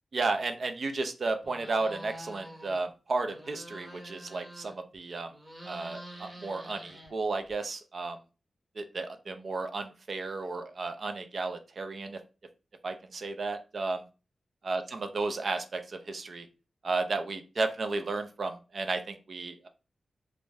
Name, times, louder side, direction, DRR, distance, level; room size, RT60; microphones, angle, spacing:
voice 1, 0.1-5.3 5.6-8.2 8.8-12.2 12.8-14.0 14.7-16.5 16.8-19.7, right 3 dB, 55° right, 7 dB, 0.4 m, -33 dB
sound 1, 1.4-2.8 3.1-5.0 5.3-7.5, right 1 dB, 20° right, 0.8 m, -47 dB
2.5 x 2.2 x 3.2 m, 0.32 s
wide cardioid pair, 115°, 0 cm